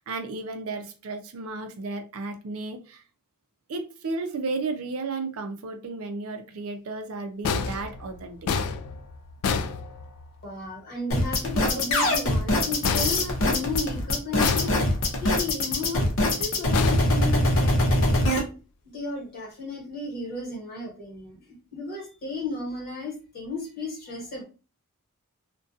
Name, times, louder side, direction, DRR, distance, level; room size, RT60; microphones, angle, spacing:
voice 1, 0.0-3.0 3.7-8.5, right 3 dB, 70° right, 6 dB, 0.4 m, -33 dB
sound 1, 7.4-10.5 12.8-13.9 14.4-15.2 16.7-17.8, left 5 dB, 85° left, 0.3 m, -29 dB
voice 2, 10.4-14.7 15.2-18.3 18.8-24.4, left 3 dB, 40° left, -2 dB, 1.2 m, -34 dB
sound 2, 11.1-18.4, left 1 dB, 60° left, 0.7 m, -23 dB
2.4 x 2.2 x 2.5 m, 0.34 s
head